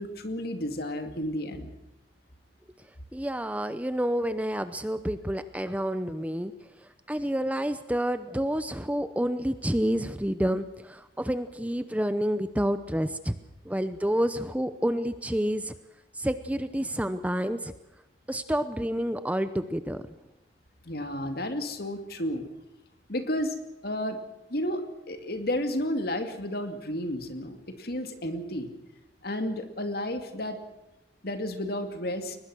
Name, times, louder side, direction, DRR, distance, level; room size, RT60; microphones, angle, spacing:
voice 1, 0.0-1.7 20.9-22.5 23.1-23.6 23.8-24.2 24.5-28.7 29.2-30.6 31.2-32.4, left 1 dB, 55° left, 7 dB, 2.5 m, -32 dB
voice 2, 3.1-6.5 7.1-13.4 13.6-15.7 16.1-17.7 18.3-20.0, equal, 10° right, 11 dB, 0.7 m, -29 dB
22.5 x 20.5 x 6.3 m, 0.95 s
head